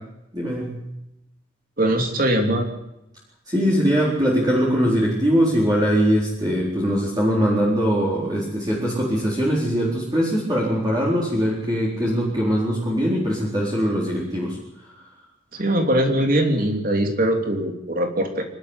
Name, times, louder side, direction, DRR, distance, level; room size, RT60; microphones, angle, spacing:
voice 1, 0.3-0.8 3.5-14.6, equal, 20° right, -5 dB, 4.2 m, -21 dB
voice 2, 1.8-2.7 15.5-18.4, right 1 dB, 45° right, 4 dB, 3.1 m, -21 dB
25.5 x 12.5 x 8.2 m, 0.88 s
head